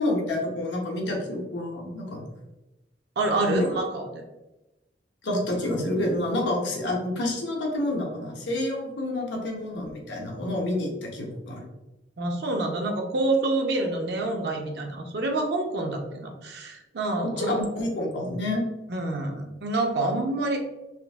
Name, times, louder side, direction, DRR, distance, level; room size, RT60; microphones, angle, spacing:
voice 1, 0.0-2.2 3.4-3.8 5.2-11.6 17.2-18.6, left 1 dB, 85° left, -1 dB, 0.7 m, -28 dB
voice 2, 3.2-4.2 12.2-17.6 18.9-20.6, right 2 dB, 65° right, 2 dB, 0.5 m, -27 dB
3.7 x 2.5 x 2.3 m, 1.0 s
head